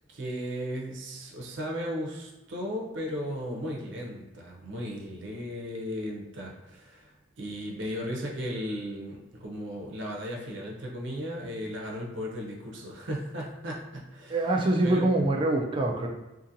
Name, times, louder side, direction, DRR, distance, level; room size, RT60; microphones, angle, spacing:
voice 1, 0.1-7.1 7.4-15.1, equal, 75° right, -1 dB, 0.5 m, -36 dB
voice 2, 14.3-16.1, right 2 dB, 25° right, 1 dB, 0.3 m, -24 dB
2.6 x 2.6 x 2.5 m, 1.1 s
head